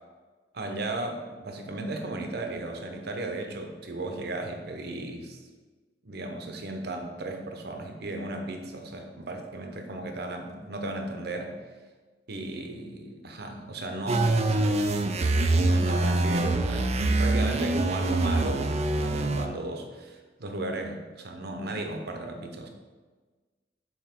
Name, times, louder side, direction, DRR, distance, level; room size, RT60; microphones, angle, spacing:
voice 1, 0.5-5.5 6.0-11.6 12.3-15.3 15.6-16.9 17.2-22.7, right 2 dB, 60° right, 4 dB, 0.9 m, -35 dB
sound 1, 14.1-19.5, right 2 dB, 35° right, 0.5 m, -24 dB
7.3 x 4.2 x 4.4 m, 1.4 s
head